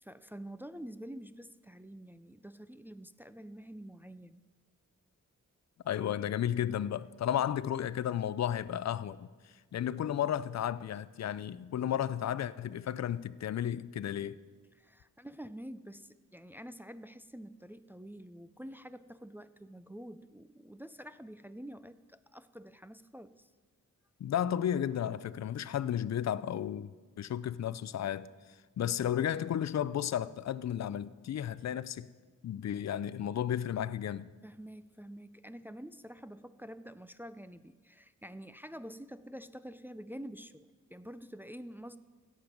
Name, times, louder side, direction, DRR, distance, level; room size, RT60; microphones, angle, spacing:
voice 1, 0.0-4.4 14.7-23.5 34.4-42.0, equal, 5° right, 0.4 m, -47 dB
voice 2, 5.8-9.3 9.7-14.4 24.2-26.9 27.2-28.3 28.8-32.1 32.4-34.3, left 10 dB, 60° left, 0.5 m, -33 dB
16.5 x 7.4 x 5.1 m
cardioid pair, 80°, 31 cm